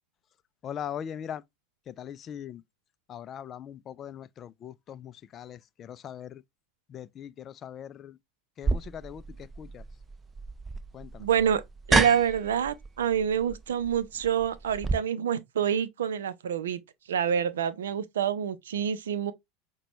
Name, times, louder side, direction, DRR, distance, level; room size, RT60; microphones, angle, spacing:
voice 1, 0.6-1.4 1.9-2.6 3.1-6.4 6.9-8.2 8.6-9.8 10.9-11.3, left 9 dB, 40° left, 0.3 m, -41 dB
sound 1, 8.6-14.9, right 3 dB, 20° right, 0.6 m, -30 dB
voice 2, 11.2-11.6 11.9-16.8 17.1-19.3, right 8 dB, 75° right, 0.5 m, -27 dB
5.9 x 2.2 x 2.9 m
hypercardioid pair, 80°, 0 cm